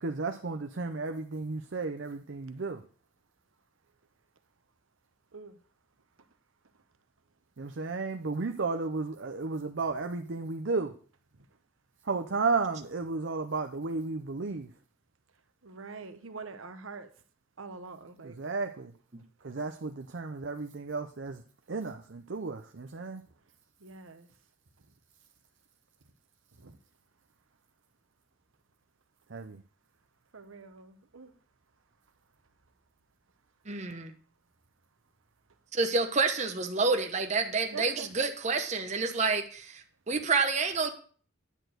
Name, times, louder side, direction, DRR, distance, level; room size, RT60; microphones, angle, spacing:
voice 1, 0.0-2.8 7.6-10.9 12.0-14.7 18.2-18.9 19.4-21.4 21.7-23.2 29.3-29.6, right 4 dB, 60° right, 0.6 m, -33 dB
voice 2, 15.6-17.1 17.6-18.4 19.4-19.5 23.8-24.3 26.6-26.8 30.3-31.3 37.7-38.1, right 4 dB, 85° right, 1.0 m, -45 dB
voice 3, 33.7-34.1 35.7-40.9, right 4 dB, 35° right, 0.9 m, -29 dB
10.0 x 4.5 x 7.8 m
head